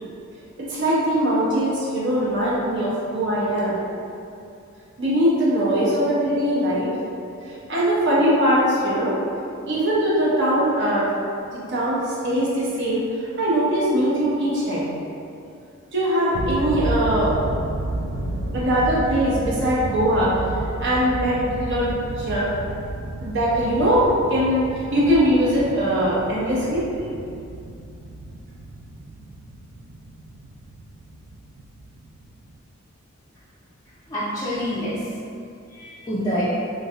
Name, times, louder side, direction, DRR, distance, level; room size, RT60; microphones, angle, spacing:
voice 1, 0.6-3.8 5.0-7.0 7.7-9.2 9.7-11.1 11.5-13.1 13.4-14.9 15.9-17.3 18.5-20.4 20.8-22.5 23.2-24.7 24.9-26.9, equal, 60° right, -7 dB, 0.7 m, -21 dB
sound 1, 16.3-32.6, right 1 dB, 90° right, 0.3 m, -32 dB
voice 2, 34.1-35.1 35.7-36.4, equal, 15° left, -11 dB, 0.4 m, -27 dB
3.1 x 2.6 x 2.4 m, 2.5 s
head